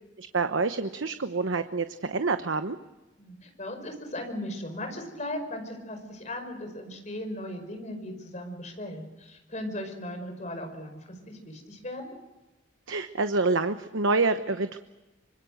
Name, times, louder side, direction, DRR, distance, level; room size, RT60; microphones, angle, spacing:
voice 1, 0.2-2.8 12.9-14.8, right 3 dB, 85° right, 9 dB, 1.0 m, -27 dB
voice 2, 3.2-12.1, left 1 dB, 35° left, 5 dB, 5.3 m, -37 dB
25.5 x 25.5 x 6.6 m, 1.1 s
head